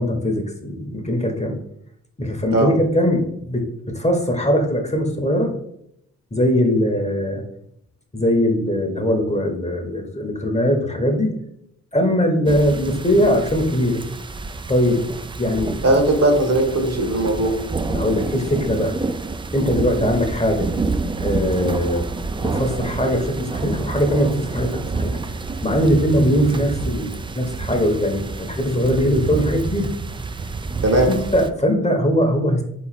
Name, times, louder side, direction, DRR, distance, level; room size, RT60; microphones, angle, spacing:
voice 1, 0.0-1.6 2.2-5.5 6.3-7.4 8.1-11.3 11.9-14.0 14.7-15.0 15.4-15.7 17.9-18.9 19.5-20.7 21.2-22.0 22.4-25.2 25.6-29.9 31.1-32.6, equal, 20° left, 4 dB, 0.9 m, -20 dB
sound 1, 12.5-31.5, right 3 dB, 15° right, 0.3 m, -28 dB
voice 2, 15.8-17.5 30.8-31.1, right 2 dB, 50° right, 4 dB, 1.2 m, -18 dB
3.8 x 3.1 x 4.1 m, 0.75 s
supercardioid pair, 40°, 35 cm